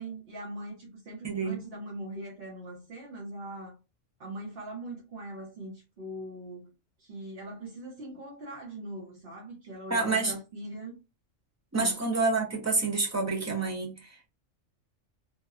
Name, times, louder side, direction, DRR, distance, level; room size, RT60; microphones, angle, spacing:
voice 1, 0.0-3.8 4.2-6.7 7.0-11.0 11.7-12.0, right 1 dB, 55° right, 0.9 m, -41 dB
voice 2, 1.2-1.6 9.9-10.3 11.7-14.3, right 3 dB, 25° right, 0.3 m, -28 dB
2.9 x 2.1 x 2.3 m
omnidirectional pair, 1.3 m